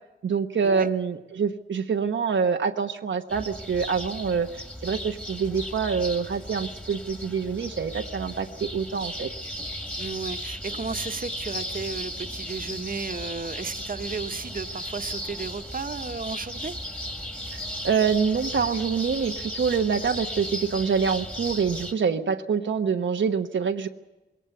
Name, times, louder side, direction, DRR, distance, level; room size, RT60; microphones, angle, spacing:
voice 1, 0.2-4.5 4.8-9.3 17.5-23.9, right 6 dB, 85° right, 4 dB, 1.2 m, -26 dB
sound 1, 3.3-21.9, equal, 5° left, 2.1 m, -36 dB
voice 2, 10.0-16.7, right 4 dB, 50° right, 7 dB, 1.4 m, -34 dB
21.5 x 18.0 x 8.0 m, 1.1 s
wide cardioid pair, 85°, 19 cm